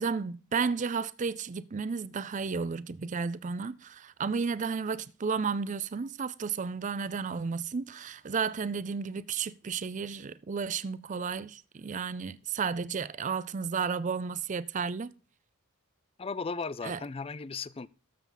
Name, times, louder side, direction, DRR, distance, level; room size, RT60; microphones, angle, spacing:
voice 1, 0.0-15.1 16.8-17.0, right 5 dB, 35° right, 0.4 m, -33 dB
voice 2, 16.2-17.9, left 4 dB, 25° left, 0.4 m, -36 dB
13.0 x 7.0 x 3.9 m
head